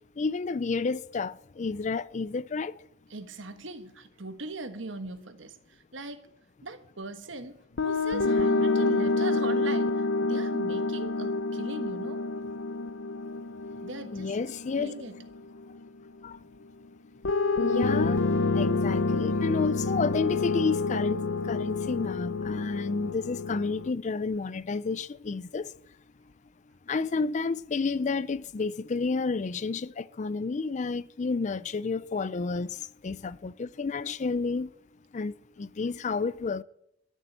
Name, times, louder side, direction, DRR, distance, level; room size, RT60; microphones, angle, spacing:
voice 1, 0.2-2.7 14.1-14.9 16.2-16.4 17.6-18.2 18.5-25.7 26.9-32.8 33.0-34.7 35.1-36.6, left 4 dB, 40° left, 0.4 m, -30 dB
voice 2, 3.1-6.3 6.6-7.6 7.8-12.2 13.8-14.4 14.8-15.2, right 2 dB, 70° right, 1.4 m, -40 dB
sound 1, 7.8-15.9 17.2-23.9, left 3 dB, 70° left, 0.7 m, -28 dB
13.0 x 7.4 x 9.0 m
head